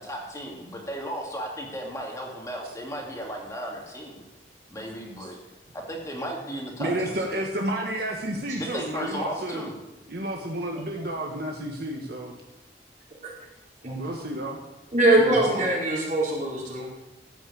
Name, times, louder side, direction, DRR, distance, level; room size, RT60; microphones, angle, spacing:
voice 1, 0.0-4.2 4.7-5.4 5.7-7.5 8.6-9.7, equal, 20° left, -1 dB, 2.3 m, -35 dB
voice 2, 6.8-9.6 10.1-12.3 14.0-14.6 15.2-15.7, right 1 dB, 60° right, 0 dB, 1.5 m, -31 dB
voice 3, 14.9-16.9, right 1 dB, 45° right, -5 dB, 4.7 m, -22 dB
14.5 x 6.1 x 8.6 m, 1.0 s
head